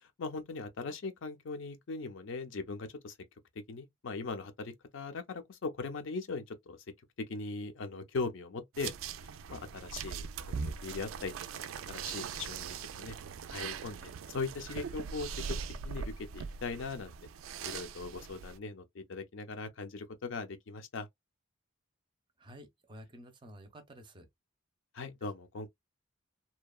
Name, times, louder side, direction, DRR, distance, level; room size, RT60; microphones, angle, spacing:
voice 1, 0.2-3.1 3.7-6.8 7.3-8.9 9.5-11.3 11.9-13.2 13.5-15.3 15.8-17.1 17.6-21.1 24.9-25.7, left 4 dB, 70° left, 0.5 m, -40 dB
sound 1, 8.7-18.6, right 6 dB, 85° right, 0.3 m, -41 dB
voice 2, 22.4-24.3 25.2-25.3, equal, 25° right, 0.5 m, -52 dB
2.8 x 2.2 x 2.2 m
head